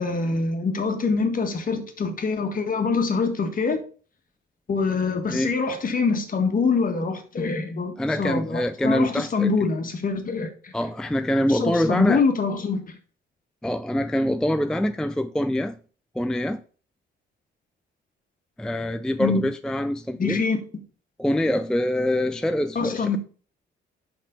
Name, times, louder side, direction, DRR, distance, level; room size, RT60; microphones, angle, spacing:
voice 1, 0.0-3.8 4.7-10.7 11.5-12.8 19.2-19.4 20.2-20.6 22.8-23.2, left 4 dB, 45° left, 1.7 m, -24 dB
voice 2, 8.0-9.5 10.7-12.2 13.6-15.8 16.2-16.6 18.6-20.4 21.2-23.2, left 1 dB, 5° left, 0.4 m, -24 dB
5.7 x 5.4 x 5.1 m
cardioid pair, 90°, 20 cm